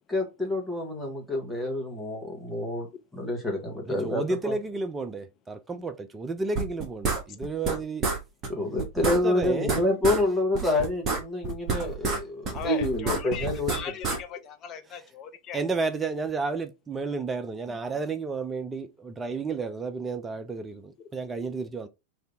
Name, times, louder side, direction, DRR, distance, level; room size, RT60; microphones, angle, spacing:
voice 1, 0.1-2.9 3.1-4.5 8.5-13.8, left 1 dB, 5° left, 1.4 m, -28 dB
voice 2, 3.9-8.1 9.0-9.7 10.6-10.7 15.5-21.9, right 3 dB, 15° right, 0.4 m, -32 dB
sound 1, 6.6-7.8 8.0-8.2 8.4-8.5 8.8-10.2 10.5-12.2 12.5-14.2, right 4 dB, 30° right, 1.2 m, -28 dB
voice 3, 12.5-15.6, left 8 dB, 30° left, 0.6 m, -38 dB
3.3 x 2.7 x 3.7 m
figure-of-eight pair, 90°, 0 cm